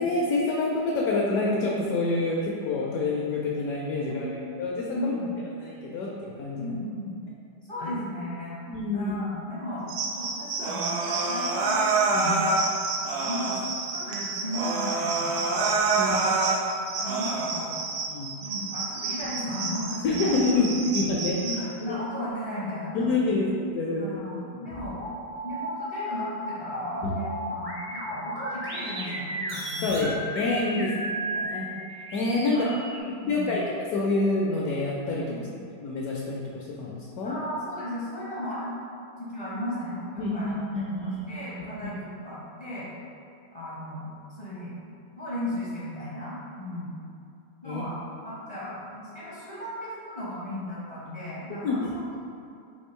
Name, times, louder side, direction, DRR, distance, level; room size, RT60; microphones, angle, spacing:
voice 1, 0.0-4.3 4.6-5.1 5.6-6.7 8.7-9.1 12.1-12.3 15.9-16.2 18.1-18.3 20.0-21.3 22.9-24.0 27.0-27.1 29.8-30.1 30.3-30.9 31.4-32.7 33.3-33.6 33.9-35.2 35.8-37.4 40.2-41.2 47.6-47.8 51.6-51.9, left 3 dB, 70° left, -3 dB, 1.0 m, -27 dB
voice 2, 4.9-5.4 6.6-7.2 7.7-8.6 8.9-12.5 13.2-13.6 13.9-16.5 16.9-17.8 18.4-20.7 21.4-23.3 24.0-25.0 25.4-30.1 31.0-31.1 31.4-31.5 32.5-32.8 33.2-33.6 35.3-35.6 37.2-38.7 39.2-42.9 43.5-44.1 44.4-44.9 45.2-46.9 47.6-47.9 48.2-52.2, left 1 dB, 40° left, -9 dB, 0.5 m, -36 dB
sound 1, 9.9-21.6, right 4 dB, 90° right, 1.2 m, -34 dB
Human voice, 10.6-12.7 13.0-13.7 14.1-14.2 14.5-16.6 17.0-17.6, right 3 dB, 70° right, 1.0 m, -26 dB
sound 2, 24.6-33.0, equal, 30° right, 0.4 m, -34 dB
3.5 x 3.0 x 4.3 m, 2.5 s
omnidirectional pair, 1.8 m